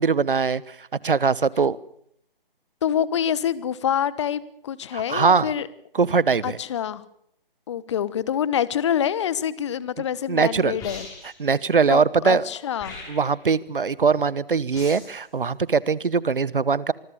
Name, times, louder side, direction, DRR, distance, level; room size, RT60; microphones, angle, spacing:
voice 1, 0.0-1.8 4.9-5.5 5.9-6.6 10.3-10.8 11.4-12.5 13.1-16.9, right 5 dB, 65° right, 21 dB, 1.2 m, -21 dB
voice 2, 2.8-5.7 6.4-7.0 7.7-11.1 11.9-13.0, left 9 dB, 30° left, 18 dB, 1.2 m, -26 dB
sound 1, 10.8-11.4 12.7-13.4 14.7-15.2, left 3 dB, 10° left, 6.6 m, -40 dB
26.0 x 20.5 x 6.8 m, 0.68 s
figure-of-eight pair, 145°, 29 cm